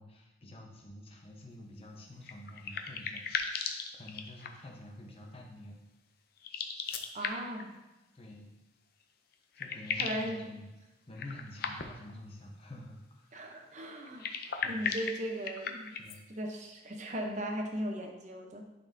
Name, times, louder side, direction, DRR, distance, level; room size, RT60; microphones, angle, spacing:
voice 1, 0.0-5.8 8.1-8.5 9.5-10.7 11.1-13.3 14.6-14.8 16.0-16.2, left 1 dB, 30° left, 0 dB, 0.9 m, -48 dB
sound 1, 2.2-4.7 6.4-7.6 9.0-9.1 9.3-10.3 11.1-12.1 14.0-16.2, left 6 dB, 50° left, 0.5 m, -37 dB
voice 2, 7.1-7.8 10.0-10.4 13.3-14.3 14.6-15.9 16.3-18.6, equal, 40° right, 2 dB, 0.8 m, -37 dB
10.5 x 4.2 x 2.7 m, 1.0 s
head